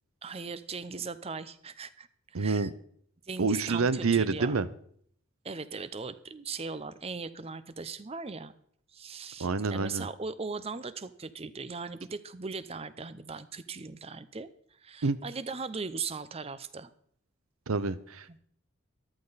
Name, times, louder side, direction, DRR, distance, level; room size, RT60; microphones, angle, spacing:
voice 1, 0.2-2.7 3.3-4.6 5.4-8.5 8.9-14.5 14.8-16.9, right 4 dB, 30° right, 14 dB, 0.6 m, -39 dB
voice 2, 2.3-2.7 3.4-4.7 9.4-10.1 15.0-15.2 17.7-18.4, right 4 dB, 90° right, 15 dB, 0.7 m, -28 dB
14.0 x 12.0 x 4.1 m, 0.63 s
head